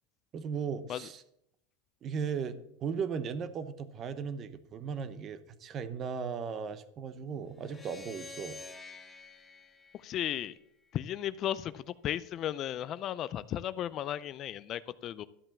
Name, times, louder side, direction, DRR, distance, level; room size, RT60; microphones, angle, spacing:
voice 1, 0.3-1.2 2.0-8.6, right 6 dB, 30° right, 13 dB, 0.8 m, -37 dB
sound 1, 7.6-10.9, left 3 dB, 10° left, 1.0 m, -49 dB
voice 2, 10.0-10.5 10.9-15.3, left 11 dB, 30° left, 16 dB, 0.4 m, -35 dB
12.5 x 5.5 x 7.2 m, 0.78 s
supercardioid pair, 160°, 0 cm